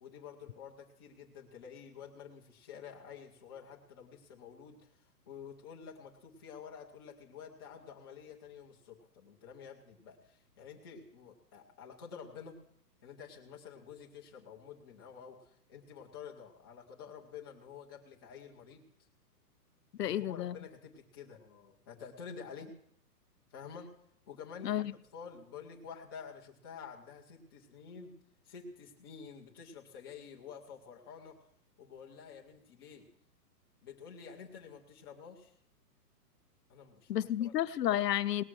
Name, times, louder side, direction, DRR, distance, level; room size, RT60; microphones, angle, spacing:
voice 1, 0.0-12.6 13.0-19.1 20.0-22.7 23.5-23.9 24.3-28.1 28.4-31.4 31.8-33.1 33.8-35.6 36.7-37.5, left 6 dB, 15° left, 0.8 m, -50 dB
voice 2, 20.0-20.5 24.6-24.8 37.1-38.4, left 12 dB, 75° left, 0.7 m, -31 dB
18.5 x 6.9 x 6.2 m
hypercardioid pair, 175°, 49 cm